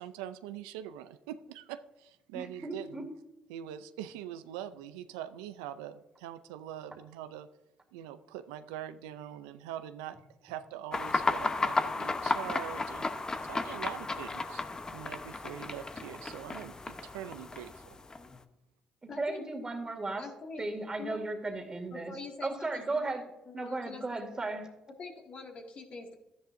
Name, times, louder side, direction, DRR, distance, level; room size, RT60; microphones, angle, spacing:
voice 1, 0.0-3.1 3.5-7.5 7.9-10.2 10.4-13.1 13.4-14.6 14.9-18.0, right 11 dB, 85° right, 11 dB, 0.4 m, -43 dB
voice 2, 2.3-3.1 19.0-20.2 20.6-22.2 22.4-23.2 23.5-24.7, right 2 dB, 30° right, 5 dB, 2.1 m, -35 dB
sound 1, 10.9-18.4, left 3 dB, 30° left, 0.9 m, -34 dB
voice 3, 19.1-19.6 20.2-20.7 21.0-21.2 21.9-23.1 23.5-24.0 25.0-26.1, left 3 dB, 50° left, 2 dB, 2.0 m, -44 dB
12.5 x 10.5 x 2.6 m, 0.96 s
hypercardioid pair, 55°, 3 cm